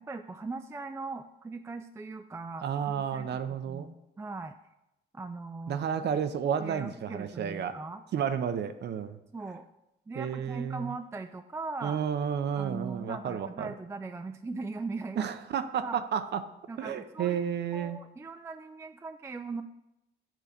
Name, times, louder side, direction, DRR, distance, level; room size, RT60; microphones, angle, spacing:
voice 1, 0.0-3.4 3.7-4.6 5.1-5.9 6.6-8.0 9.3-9.6 10.1-12.0 12.5-15.3 15.8-16.0 16.7-17.4 17.7-19.6, right 3 dB, 15° right, 7 dB, 0.3 m, -39 dB
voice 2, 2.6-3.9 5.7-7.8 8.1-9.2 10.2-10.9 11.8-13.7 15.2-16.5 16.8-18.0, right 8 dB, 60° right, 10 dB, 0.6 m, -31 dB
7.5 x 3.8 x 6.7 m, 0.87 s
cardioid pair, 90°, 20 cm